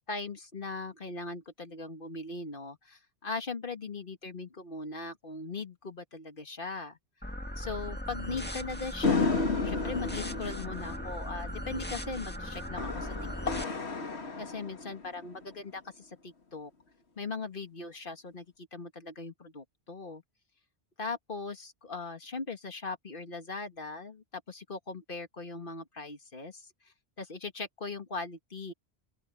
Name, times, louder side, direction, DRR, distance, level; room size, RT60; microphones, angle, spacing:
voice 1, 0.0-7.0 7.6-13.2 13.6-13.8 14.4-16.7 17.2-20.2 21.0-26.7 27.2-28.7, left 3 dB, 55° left, 2.1 m, -39 dB
sound 1, 7.2-13.6, equal, 10° left, 1.6 m, -38 dB
sound 2, 9.0-15.5, left 4 dB, 85° left, 2.2 m, -33 dB
open air
omnidirectional pair, 1.1 m